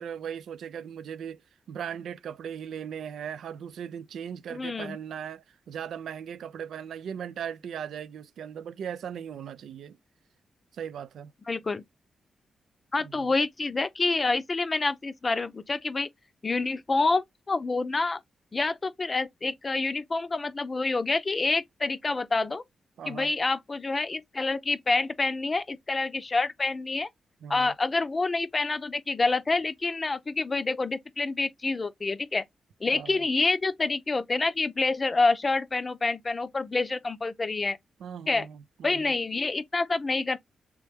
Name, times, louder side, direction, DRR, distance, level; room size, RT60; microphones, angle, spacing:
voice 1, 0.0-1.4 1.7-10.0 10.7-11.3 13.0-13.3 23.0-23.3 27.4-27.7 32.9-33.3 38.0-39.0, right 8 dB, 80° right, 0.3 m, -38 dB
voice 2, 4.5-5.0 11.5-11.8 12.9-16.1 16.4-18.2 18.5-22.6 23.1-27.1 27.5-32.4 32.8-37.8 38.3-38.5 38.8-40.4, left 3 dB, 40° left, 0.5 m, -27 dB
3.3 x 3.1 x 3.2 m
cardioid pair, 55°, 0 cm